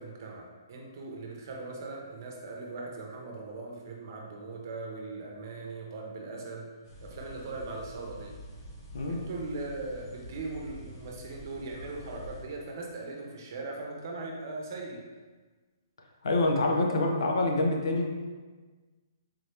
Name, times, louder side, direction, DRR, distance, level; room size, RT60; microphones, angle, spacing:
voice 1, 0.0-6.7 7.0-8.4 9.0-15.1, right 3 dB, 50° right, 0 dB, 0.8 m, -39 dB
sound 1, 6.8-12.4, equal, 50° left, 1.1 m, -46 dB
voice 2, 16.2-18.1, left 2 dB, 80° left, 2 dB, 0.6 m, -26 dB
3.8 x 2.8 x 3.3 m, 1.3 s
hypercardioid pair, 155°, 2 cm